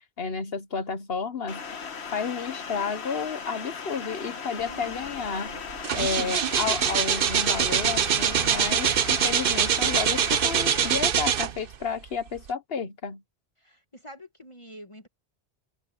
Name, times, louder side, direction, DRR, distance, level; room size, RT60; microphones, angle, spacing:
voice 1, 0.2-1.6 2.1-5.6 5.9-13.2, left 5 dB, 65° left, 1.3 m, -31 dB
sound 1, 1.5-10.9, left 6 dB, 85° left, 1.4 m, -37 dB
voice 2, 4.2-5.1 13.6-15.1, equal, 30° left, 1.5 m, -47 dB
sound 2, 5.1-5.3 5.6-11.8 12.4-12.5, right 8 dB, 60° right, 0.9 m, -24 dB
omnidirectional pair, 1.1 m